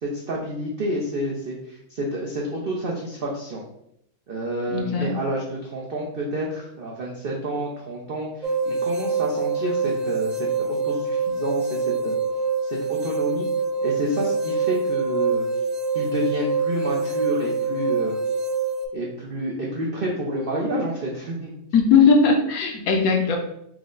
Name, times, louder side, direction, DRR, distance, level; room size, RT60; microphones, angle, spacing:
voice 1, 0.0-3.6 4.3-12.2 12.6-13.5 13.8-15.4 15.9-18.1 18.9-21.5, right 1 dB, 85° right, -3 dB, 0.5 m, -29 dB
voice 2, 4.7-5.1 21.7-23.4, left 5 dB, 70° left, 2 dB, 0.9 m, -18 dB
sound 1, 8.4-18.9, right 4 dB, 70° right, 0.8 m, -25 dB
4.6 x 2.1 x 3.7 m, 0.75 s
omnidirectional pair, 1.8 m